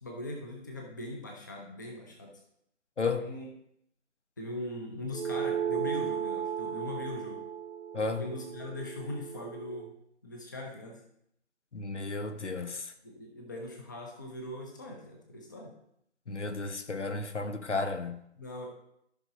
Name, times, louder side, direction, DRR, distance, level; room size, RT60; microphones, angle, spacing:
voice 1, 0.0-2.3 3.1-3.5 4.4-7.4 8.2-9.9 10.2-11.0 13.0-15.7 18.3-18.7, left 2 dB, 15° left, 0.8 m, -40 dB
voice 2, 3.0-3.3 7.9-8.2 11.7-12.9 16.3-18.2, left 3 dB, 80° left, 1.3 m, -33 dB
sound 1, 5.1-9.9, right 8 dB, 90° right, 0.7 m, -35 dB
14.0 x 6.0 x 2.8 m
figure-of-eight pair, 165°, 35 cm